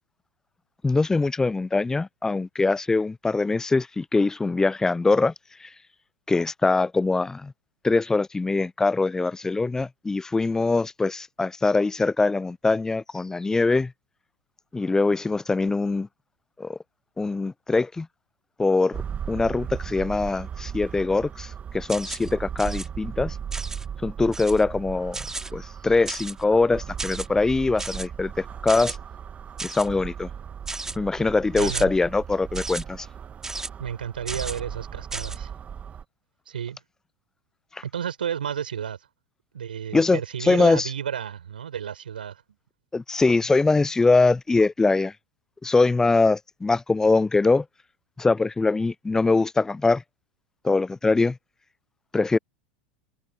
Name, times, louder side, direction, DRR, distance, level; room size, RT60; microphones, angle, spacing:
voice 1, 0.8-5.3 5.6-5.7 6.3-7.5 7.8-13.9 14.7-16.1 16.6-16.8 17.2-18.1 18.6-19.0 19.3-23.4 24.0-25.2 25.5-29.0 29.6-30.3 31.0-33.1 37.7-37.8 39.9-40.9 42.9-45.1 45.6-47.7 48.2-50.0 50.6-51.4 52.1-52.4, left 3 dB, 10° left, 0.4 m, -23 dB
sound 1, 18.9-36.0, right 8 dB, 30° right, 1.6 m, -37 dB
sound 2, 21.9-22.3 22.6-22.9 23.5-23.8 24.3-24.6 25.1-25.5 26.1-26.4 27.0-27.3 27.8-28.1 28.7-29.0 29.6-29.9 30.7-31.0 31.6-31.8 32.5-32.8 33.4-33.7 34.3-34.6 35.1-35.4, right 3 dB, 10° right, 2.5 m, -34 dB
voice 2, 31.6-31.9 33.8-35.5 36.5-36.8 37.8-39.0 39.5-42.4, right 8 dB, 80° right, 6.7 m, -32 dB
hypercardioid pair, 90°, 5 cm